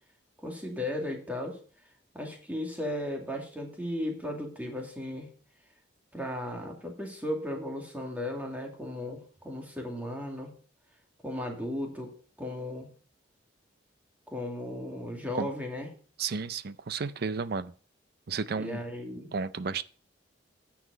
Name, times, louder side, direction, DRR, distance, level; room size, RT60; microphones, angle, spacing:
voice 1, 0.4-1.6 2.1-5.3 6.1-10.5 11.2-12.9 14.3-15.9 18.5-19.3, left 1 dB, 10° right, 2.3 m, -36 dB
voice 2, 16.2-17.7 18.3-18.8 19.3-19.8, right 5 dB, 55° right, 0.5 m, -32 dB
9.9 x 7.2 x 5.2 m
head